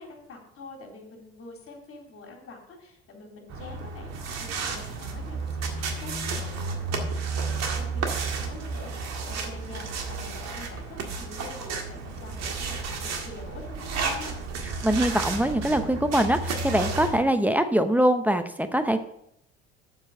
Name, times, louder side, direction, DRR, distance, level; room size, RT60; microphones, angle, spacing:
voice 1, 0.0-13.0 13.2-14.4, left 3 dB, 40° left, 1 dB, 3.7 m, -45 dB
sound 1, 3.5-17.2, right 4 dB, 50° right, 1.9 m, -32 dB
voice 2, 14.8-19.0, right 1 dB, 5° right, 9 dB, 0.8 m, -23 dB
7.3 x 6.4 x 7.8 m, 0.79 s
hypercardioid pair, 65°, 33 cm